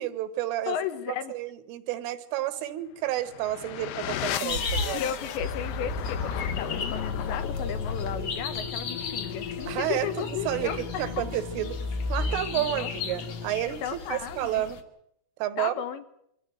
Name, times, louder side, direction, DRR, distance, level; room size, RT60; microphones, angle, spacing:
voice 1, 0.0-0.8 1.3-5.0 9.7-11.8 12.1-13.8 14.1-14.8 15.4-15.7, right 13 dB, 85° right, 12 dB, 4.0 m, -30 dB
voice 2, 0.7-1.3 4.9-11.2 12.5-12.9 13.8-14.6 15.6-16.1, left 9 dB, 70° left, 10 dB, 3.3 m, -34 dB
sound 1, 3.2-13.9, left 6 dB, 90° left, 4.0 m, -34 dB
sound 2, 4.4-12.5, right 6 dB, 55° right, 1.6 m, -48 dB
sound 3, 4.5-14.8, left 4 dB, 50° left, 2.3 m, -37 dB
24.5 x 15.0 x 9.4 m, 0.73 s
omnidirectional pair, 5.7 m